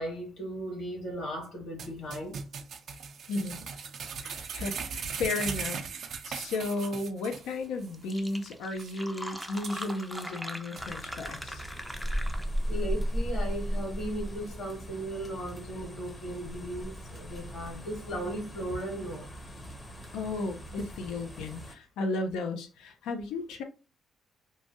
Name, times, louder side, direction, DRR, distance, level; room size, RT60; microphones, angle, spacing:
voice 1, 0.0-2.4 12.7-19.3, right 1 dB, 65° left, 1.7 m, -36 dB
sound 1, 1.8-7.5 7.8-7.9 8.3-8.4 8.8-8.9 9.4-10.2 10.8-10.9, right 6 dB, 65° right, 0.4 m, -38 dB
voice 2, 4.2-5.8 6.2-11.6 20.1-23.6, left 2 dB, 90° left, 0.5 m, -34 dB
Fill (with liquid), 7.6-7.7 7.9-12.7, equal, ahead, 0.4 m, -41 dB
sound 2, 10.8-21.7, equal, 30° left, 0.7 m, -36 dB
3.1 x 2.2 x 2.7 m
cardioid pair, 90°, 0 cm